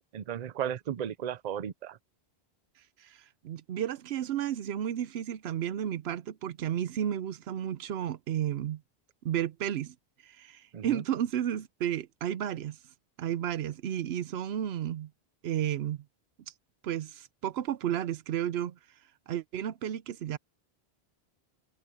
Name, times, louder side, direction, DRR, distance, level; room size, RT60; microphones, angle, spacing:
voice 1, 0.1-2.0 10.7-11.0, right 9 dB, 50° right, 0.6 m, -35 dB
voice 2, 3.0-8.8 9.2-9.9 10.2-12.8 13.2-15.1 15.4-16.0 16.8-18.8 19.3-20.4, right 10 dB, 85° right, 0.9 m, -32 dB
omnidirectional pair, 1.1 m